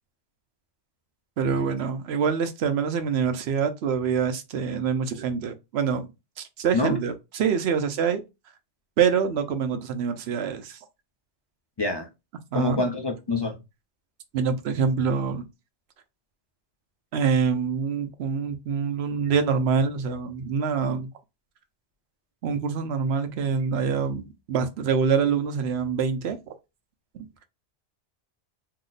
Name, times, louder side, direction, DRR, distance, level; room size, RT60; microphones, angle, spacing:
voice 1, 1.4-6.1 6.4-8.2 9.0-10.8 12.5-12.8 14.3-15.5 17.1-21.1 22.4-26.4 27.1-27.3, right 6 dB, 70° right, 0.8 m, -25 dB
voice 2, 11.8-12.1 12.5-13.6, left 2 dB, 35° left, 0.4 m, -25 dB
2.8 x 2.0 x 3.9 m
omnidirectional pair, 1.2 m